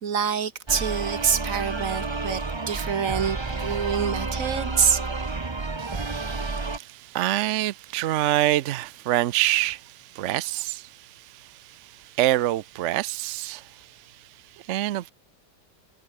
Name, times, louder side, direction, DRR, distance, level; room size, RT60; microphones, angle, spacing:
voice 1, 0.0-5.0, right 7 dB, 50° right, 1.7 m, -26 dB
sound 1, 0.7-6.8, right 3 dB, 20° right, 0.8 m, -30 dB
voice 2, 5.8-14.2 14.5-15.1, right 15 dB, 80° right, 0.6 m, -27 dB
omnidirectional pair, 1.9 m